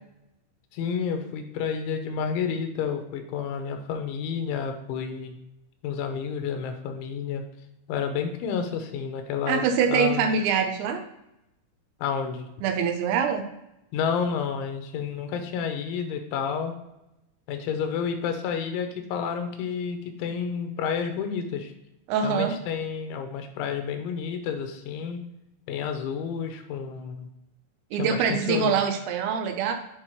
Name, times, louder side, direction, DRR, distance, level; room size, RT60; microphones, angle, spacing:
voice 1, 0.7-5.4 5.8-7.4 7.9-9.6 9.9-10.3 12.0-12.5 13.9-16.7 17.5-21.7 22.2-25.2 25.7-27.3 28.0-28.8, left 7 dB, 85° left, 6 dB, 3.2 m, -30 dB
voice 2, 9.5-11.0 12.6-13.4 22.1-22.5 27.9-29.7, right 6 dB, 80° right, 6 dB, 2.8 m, -24 dB
8.1 x 3.9 x 4.5 m, 0.87 s
omnidirectional pair, 5.5 m